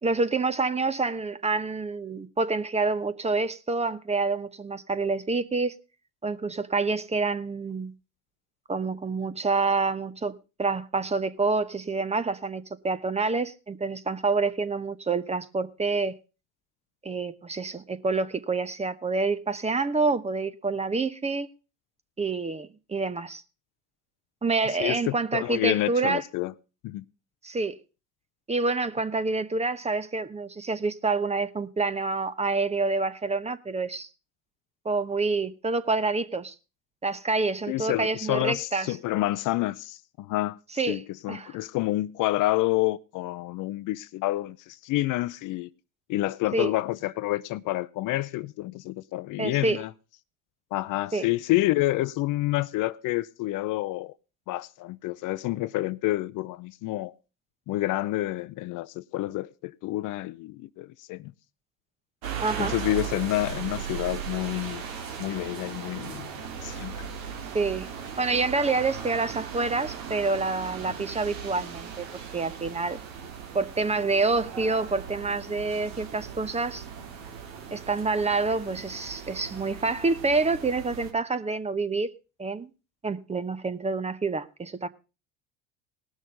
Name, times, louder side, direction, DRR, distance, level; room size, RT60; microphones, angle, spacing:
voice 1, 0.0-5.8 6.2-7.9 8.7-16.2 17.0-21.5 22.2-23.4 24.4-26.2 27.4-27.8 28.5-34.1 34.8-36.5 37.0-39.0 40.8-41.0 41.3-41.6 46.5-46.7 49.4-49.8 51.1-51.3 62.4-62.7 67.5-67.9 68.2-73.0 73.5-76.8 77.7-82.1 82.4-82.7 83.0-84.9, right 3 dB, 15° right, 0.8 m, -27 dB
voice 2, 24.8-26.5 26.8-27.0 37.7-40.6 40.9-45.7 46.1-49.9 50.7-54.1 54.5-57.1 57.7-61.3 62.6-64.8 65.2-66.3 66.6-67.1, left 17 dB, 50° left, 0.6 m, -28 dB
sound 1, 62.2-81.1, right 7 dB, 80° right, 2.1 m, -38 dB
18.5 x 6.4 x 5.1 m
hypercardioid pair, 80°, 40 cm